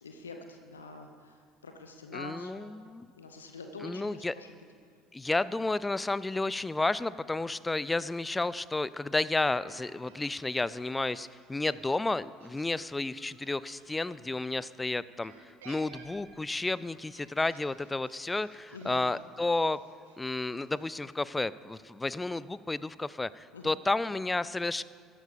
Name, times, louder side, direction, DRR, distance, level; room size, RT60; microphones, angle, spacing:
voice 1, 0.0-2.7 3.2-4.5 18.7-19.0 23.5-23.8, left 3 dB, 85° left, 5 dB, 0.8 m, -46 dB
voice 2, 2.1-3.1 3.8-4.3 5.1-19.8 20.2-24.8, left 2 dB, 15° left, 18 dB, 0.4 m, -31 dB
sound 1, 9.4-14.6 15.2-21.0, right 4 dB, 75° right, 1.7 m, -57 dB
13.5 x 10.0 x 5.2 m, 2.1 s
figure-of-eight pair, 60°, 0 cm